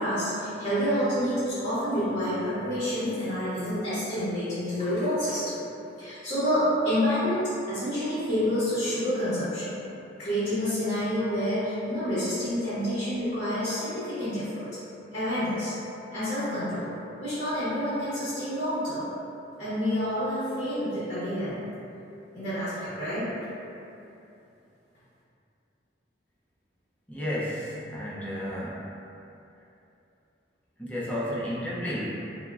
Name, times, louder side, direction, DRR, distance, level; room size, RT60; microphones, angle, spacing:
voice 1, 0.0-5.6 6.0-9.8 10.2-14.7 15.1-15.8 16.1-16.9 17.2-19.1 19.6-21.7 22.3-23.3, equal, 35° left, -14 dB, 0.8 m, -28 dB
voice 2, 27.1-28.9 30.8-32.1, equal, 10° left, -8 dB, 0.4 m, -32 dB
3.4 x 2.0 x 2.3 m, 2.8 s
head